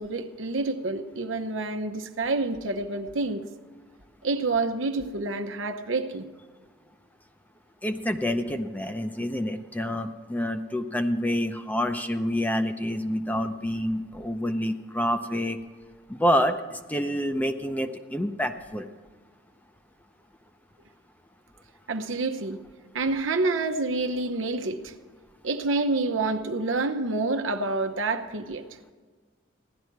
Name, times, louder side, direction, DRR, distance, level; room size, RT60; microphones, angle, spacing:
voice 1, 0.0-3.4 4.2-6.2 21.9-22.6 22.9-24.9 25.4-28.6, right 3 dB, 85° right, 7 dB, 0.9 m, -28 dB
voice 2, 7.8-15.6 16.1-18.9, equal, 10° left, 8 dB, 0.6 m, -27 dB
15.5 x 11.5 x 4.7 m, 1.5 s
head